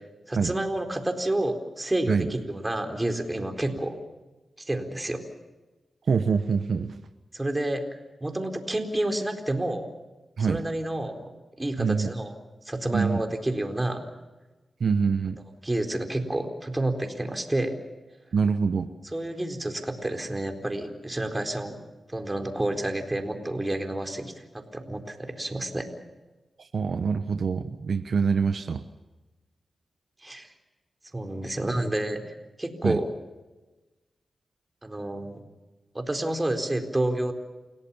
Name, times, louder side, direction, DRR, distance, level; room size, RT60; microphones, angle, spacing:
voice 1, 0.3-4.0 4.6-5.2 7.3-7.8 8.2-9.9 10.4-11.3 11.6-12.3 12.6-14.1 15.6-17.8 19.0-21.8 22.1-25.9 30.2-30.5 31.1-32.3 32.6-33.1 34.8-35.4 35.9-37.3, right 1 dB, 20° right, 5 dB, 4.2 m, -29 dB
voice 2, 6.1-6.9 10.4-10.6 11.8-12.1 12.9-13.2 14.8-15.4 18.3-18.9 26.7-28.8 32.8-33.0, right 5 dB, 70° right, 9 dB, 1.1 m, -25 dB
29.0 x 17.5 x 7.1 m, 1.2 s
cardioid pair, 65°, 0 cm